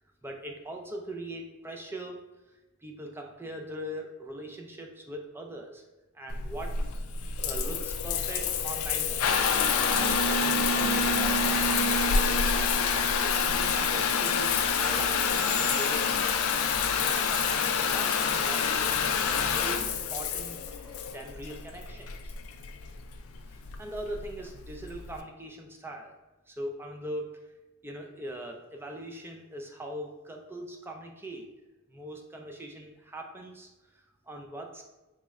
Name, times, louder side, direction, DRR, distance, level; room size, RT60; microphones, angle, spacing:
voice 1, 0.2-2.2 2.8-5.8 6.1-7.1 7.4-11.8 12.8-16.2 17.0-20.6 21.1-22.3 23.5-26.1 26.5-27.4 27.8-31.5 31.9-34.8, right 1 dB, 10° right, 2 dB, 0.3 m, -41 dB
Water tap faucet / Bathtub (filling or washing) / Trickle dribble, 6.3-25.2, left 5 dB, 70° left, 0.3 m, -27 dB
sound 1, 14.5-21.0, left 2 dB, 30° left, 0.9 m, -43 dB
4.1 x 3.0 x 2.3 m, 1.1 s
head